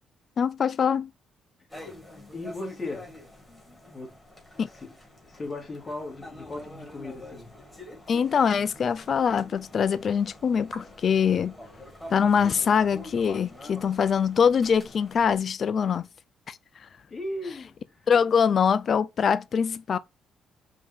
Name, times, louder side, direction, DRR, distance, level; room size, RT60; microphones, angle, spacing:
voice 1, 0.4-1.1 4.6-4.7 8.1-11.5 12.1-16.0 16.5-16.6 18.1-20.0, left 7 dB, 50° left, 0.3 m, -23 dB
sound 1, 1.7-15.4, left 1 dB, 10° left, 2.0 m, -46 dB
voice 2, 2.3-3.1 3.8-4.2 4.7-4.9 5.2-7.5 12.3-12.5 17.1-18.1, left 2 dB, 35° left, 2.2 m, -37 dB
5.1 x 2.7 x 3.5 m
cardioid pair, 90°, 0 cm